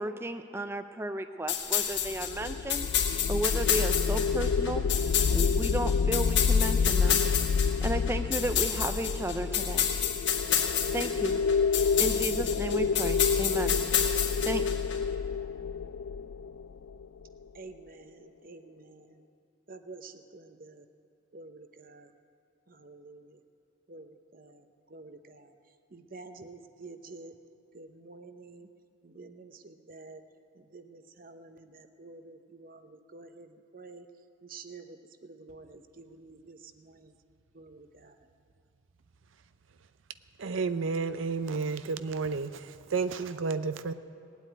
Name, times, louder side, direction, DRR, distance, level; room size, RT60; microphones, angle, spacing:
voice 1, 0.0-7.2 7.8-9.9 10.9-11.4 11.7-13.8 14.4-14.7, right 1 dB, 15° right, 8 dB, 0.4 m, -34 dB
sound 1, 1.5-15.0, left 9 dB, 65° left, 1.5 m, -30 dB
sound 2, 2.0-17.2, left 5 dB, 90° left, 0.4 m, -29 dB
voice 2, 17.5-19.2 19.7-20.8 21.3-22.1 22.8-23.4 23.9-24.6 24.9-25.5 25.9-27.3 27.7-28.7 29.0-30.2 30.7-34.1 34.5-35.0 35.2-37.1 37.5-38.1, right 3 dB, 45° right, 8 dB, 0.8 m, -49 dB
voice 3, 40.4-43.9, right 4 dB, 90° right, 11 dB, 0.6 m, -31 dB
19.0 x 8.3 x 9.3 m, 2.7 s
head